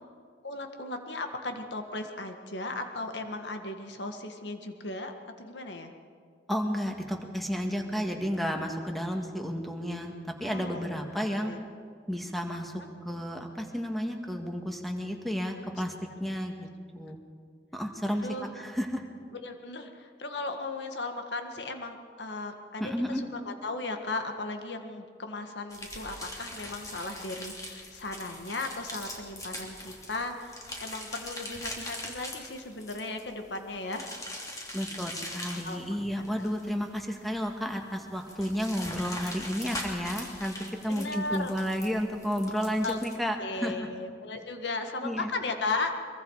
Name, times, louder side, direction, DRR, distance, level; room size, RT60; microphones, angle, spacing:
voice 1, 0.4-5.9 10.4-10.9 11.3-11.6 12.8-12.9 15.5-15.6 18.1-18.5 19.3-34.1 35.6-36.2 38.4-38.5 40.9-41.5 42.8-43.0 43.4-45.9, left 2 dB, 90° left, 5 dB, 1.8 m, -36 dB
voice 2, 6.5-11.5 12.1-12.7 13.0-15.9 16.2-16.7 16.9-17.2 17.7-18.3 18.5-19.0 22.8-23.2 34.7-43.7 45.0-45.3, equal, ahead, 3 dB, 1.8 m, -32 dB
sound 1, 25.7-43.2, left 1 dB, 20° left, 2.9 m, -41 dB
24.0 x 22.5 x 4.9 m, 2.1 s
head